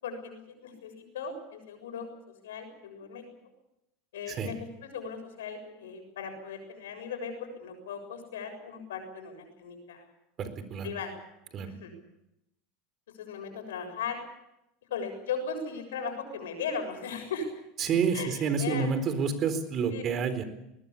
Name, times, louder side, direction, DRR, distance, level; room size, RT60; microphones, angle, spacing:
voice 1, 0.0-3.2 4.1-10.0 10.8-11.2 11.6-11.9 13.1-14.2 14.9-17.5 18.1-18.9 19.9-20.0, left 5 dB, 85° left, 6 dB, 7.0 m, -38 dB
voice 2, 10.4-10.9 11.5-11.7 17.8-20.4, right 5 dB, 40° right, 11 dB, 4.2 m, -29 dB
21.0 x 20.5 x 8.6 m, 0.87 s
supercardioid pair, 105°, 0 cm